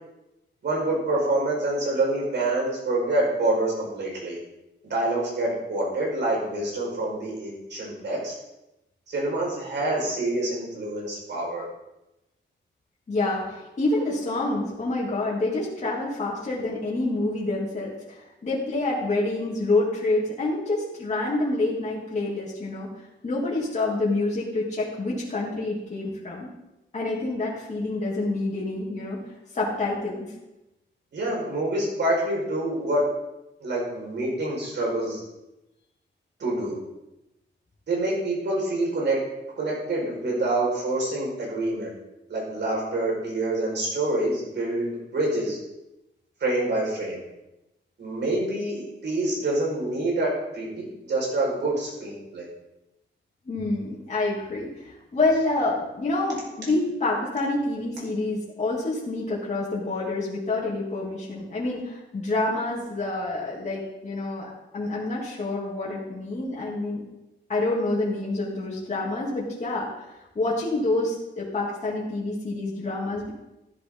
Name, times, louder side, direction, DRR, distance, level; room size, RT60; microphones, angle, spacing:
voice 1, 0.6-4.4 4.8-8.3 9.1-11.6 31.1-33.1 33.6-35.2 36.4-36.8 37.9-39.2 39.6-41.9 42.3-45.6 46.4-47.2 48.0-52.5, right 2 dB, 65° right, -3 dB, 5.5 m, -26 dB
voice 2, 13.1-22.9 23.2-26.5 26.9-29.2 29.5-30.3 53.5-67.0 67.5-70.0 70.3-73.3, left 2 dB, 35° left, -7 dB, 3.0 m, -27 dB
15.0 x 11.0 x 4.0 m, 0.94 s
wide cardioid pair, 150°, 20 cm